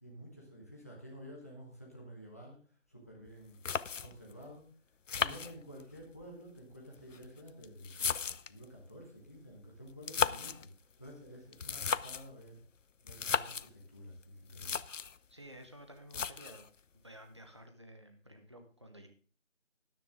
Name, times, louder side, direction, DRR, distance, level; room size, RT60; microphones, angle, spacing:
voice 1, 0.0-2.6 2.9-3.6 4.0-4.7 5.1-10.7 11.0-12.6 13.0-14.8, equal, 10° left, -2 dB, 1.3 m, -51 dB
sound 1, 3.3-3.4 3.6-4.3 5.1-6.0 6.9-8.6 9.9-10.7 11.5-12.3 13.1-13.7 14.2-14.3 14.5-15.2 16.1-16.7, left 6 dB, 85° left, 0.6 m, -35 dB
voice 2, 15.3-16.6 17.0-19.1, right 1 dB, 25° right, 5 dB, 1.0 m, -53 dB
13.0 x 10.0 x 3.6 m, 0.38 s
figure-of-eight pair, 170°, 37 cm